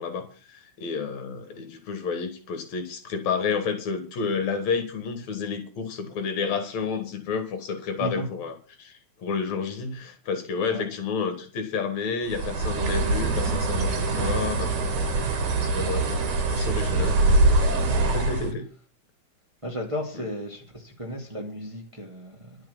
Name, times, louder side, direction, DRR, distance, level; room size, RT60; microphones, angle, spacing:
voice 1, 0.0-14.9 15.6-16.2 16.5-18.7 20.1-20.2, left 5 dB, 70° left, 3.0 m, -30 dB
Bird, 12.3-18.5, right 2 dB, 85° right, 3.7 m, -23 dB
voice 2, 16.7-17.2 17.8-18.2 19.6-22.6, equal, 10° right, 2.2 m, -35 dB
11.5 x 8.1 x 7.1 m
omnidirectional pair, 3.4 m